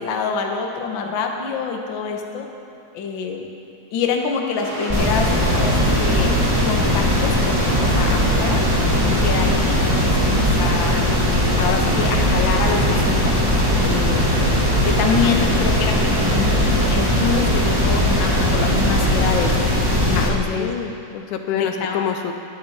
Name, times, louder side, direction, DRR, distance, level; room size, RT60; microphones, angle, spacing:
voice 1, 0.0-2.5 2.9-3.4 3.9-6.3 6.6-8.6 9.0-11.1 11.6-13.4 13.8-14.5 14.8-19.6 20.0-20.7 21.5-22.0, left 5 dB, 55° left, 2 dB, 1.4 m, -26 dB
sound 1, 4.6-19.5, equal, 40° right, 5.0 m, -30 dB
sound 2, 4.9-20.3, equal, 25° right, 0.4 m, -19 dB
voice 2, 20.1-22.3, left 8 dB, 75° left, 6 dB, 2.0 m, -26 dB
18.5 x 12.0 x 4.3 m, 2.5 s
omnidirectional pair, 3.7 m